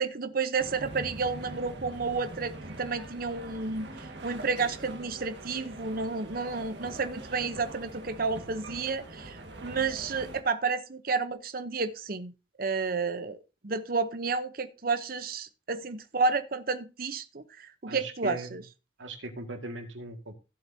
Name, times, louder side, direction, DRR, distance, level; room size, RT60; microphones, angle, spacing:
voice 1, 0.0-12.3 12.6-13.4 13.6-18.6, right 4 dB, 50° right, 11 dB, 0.8 m, -31 dB
sound 1, 0.6-10.4, right 2 dB, 65° right, 1.8 m, -43 dB
voice 2, 17.9-18.6 19.0-20.3, right 2 dB, 90° right, 6 dB, 2.0 m, -39 dB
15.0 x 8.0 x 2.8 m, 0.30 s
head